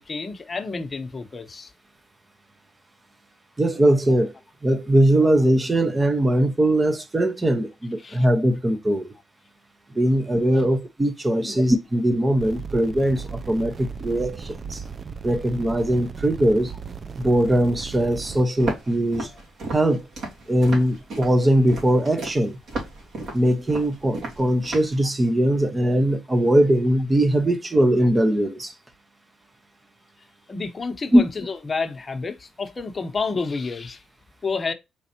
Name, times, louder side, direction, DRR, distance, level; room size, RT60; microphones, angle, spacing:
voice 1, 0.0-1.7 8.0-8.2 10.6-10.7 11.4-11.6 30.5-34.0 34.4-34.7, left 4 dB, 30° left, 0.9 m, -30 dB
voice 2, 3.6-4.3 4.6-9.1 9.9-14.8 15.2-16.7 17.2-19.3 19.7-20.1 20.5-22.6 23.3-28.7 31.1-31.2, right 1 dB, 20° right, 0.8 m, -20 dB
sound 1, 12.4-18.4, right 6 dB, 40° right, 0.3 m, -36 dB
Walk footsteps, 18.6-25.0, right 2 dB, 65° right, 2.6 m, -34 dB
4.4 x 3.9 x 2.8 m
cardioid pair, 90°, 0 cm